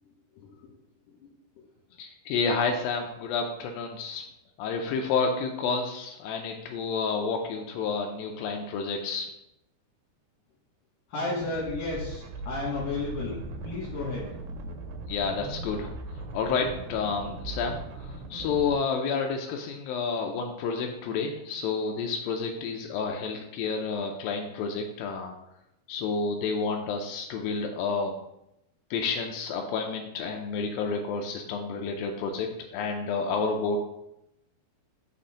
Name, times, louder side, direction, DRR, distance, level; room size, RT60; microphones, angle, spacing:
voice 1, 0.3-0.7 1.2-1.3 11.1-14.3, left 2 dB, 65° left, -6 dB, 3.0 m, -33 dB
voice 2, 2.0-4.3 4.6-9.3 15.1-25.4 25.9-28.1 28.9-32.5 32.7-33.8, left 5 dB, 85° left, 2 dB, 2.1 m, -30 dB
sound 1, 11.4-18.8, right 2 dB, 85° right, 2.8 m, -39 dB
6.0 x 4.3 x 4.9 m, 0.85 s
omnidirectional pair, 4.6 m